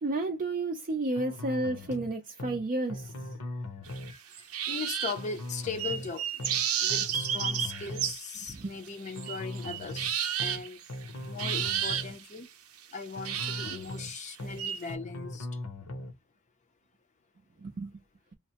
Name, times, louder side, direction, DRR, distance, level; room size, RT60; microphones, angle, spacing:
voice 1, 0.0-3.1 7.0-7.1 7.3-7.5 7.9-8.0 8.5-8.7 17.6-17.9, right 2 dB, 40° right, 0.4 m, -32 dB
sound 1, 1.2-2.1 2.4-2.6 2.9-4.1 5.2-6.1 6.4-6.6 6.9-8.1 9.2-10.1 10.4-10.6 10.9-12.1 13.2-14.1 14.4-14.6 14.9-16.1, left 1 dB, 75° left, 0.8 m, -39 dB
sound 2, 3.9-5.3 5.8-8.6 8.9-11.1 11.4-12.2 13.2-14.9, right 9 dB, 85° right, 0.6 m, -32 dB
voice 2, 4.7-6.5 6.8-10.8 11.3-12.5 12.9-15.5, left 5 dB, 35° left, 0.5 m, -39 dB
3.1 x 2.0 x 2.8 m
head